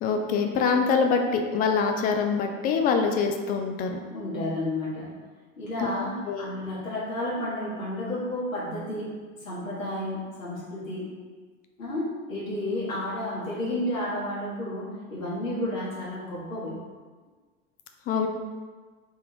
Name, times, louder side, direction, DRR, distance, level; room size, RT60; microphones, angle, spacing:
voice 1, 0.0-4.0 5.8-6.5 18.1-18.3, left 5 dB, 25° left, 4 dB, 0.3 m, -25 dB
voice 2, 4.1-5.1 5.6-11.1 11.8-16.8, left 1 dB, 80° left, -8 dB, 1.4 m, -31 dB
3.6 x 3.3 x 3.7 m, 1.4 s
figure-of-eight pair, 75°, 39 cm